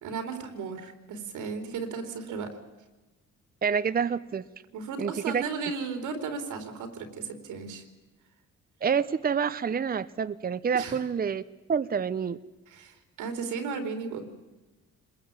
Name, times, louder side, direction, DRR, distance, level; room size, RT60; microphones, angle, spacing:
voice 1, 0.0-2.5 4.7-7.8 10.7-11.0 12.7-14.3, right 5 dB, 90° right, 7 dB, 3.8 m, -35 dB
voice 2, 3.6-4.4 5.0-5.4 8.8-11.4 11.7-12.4, right 6 dB, 30° right, 12 dB, 0.8 m, -27 dB
26.5 x 21.5 x 8.9 m, 1.1 s
cardioid pair, 90°, 30 cm